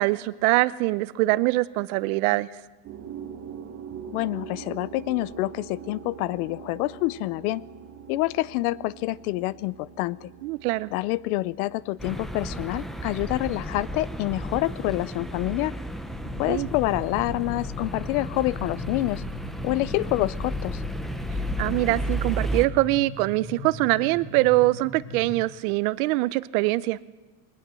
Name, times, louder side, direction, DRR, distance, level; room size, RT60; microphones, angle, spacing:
voice 1, 0.0-2.5 10.4-10.9 16.5-16.7 21.6-27.0, right 19 dB, 65° right, 17 dB, 0.8 m, -23 dB
sound 1, 2.8-16.4, right 7 dB, 35° right, 2.3 m, -44 dB
voice 2, 4.1-7.6 8.1-10.3 10.9-15.7 16.4-19.2 19.6-20.8, left 18 dB, 70° left, 22 dB, 0.7 m, -27 dB
sound 2, 12.0-22.7, right 1 dB, ahead, 0.6 m, -33 dB
sound 3, 16.1-25.4, left 1 dB, 30° left, 3.0 m, -40 dB
21.5 x 19.0 x 7.6 m, 1.2 s
cardioid pair, 170°, 46 cm